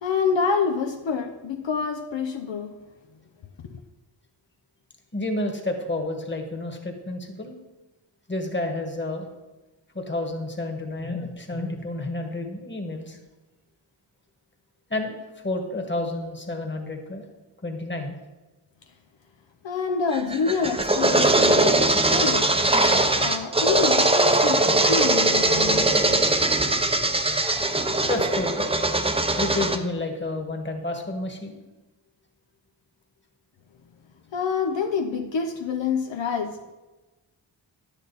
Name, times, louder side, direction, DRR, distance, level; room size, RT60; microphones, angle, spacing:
voice 1, 0.0-2.7 3.7-3.8 19.6-22.5 23.2-26.2 34.3-36.7, left 5 dB, 70° left, 0.8 m, -27 dB
voice 2, 5.1-7.5 8.3-9.3 9.9-13.2 14.9-15.2 15.4-17.2 17.6-18.1 28.1-28.7 29.4-31.6, left 2 dB, 25° left, 1.6 m, -30 dB
sound 1, 20.1-29.8, right 2 dB, 10° right, 0.7 m, -21 dB
10.5 x 9.0 x 4.1 m
wide cardioid pair, 95°, 47 cm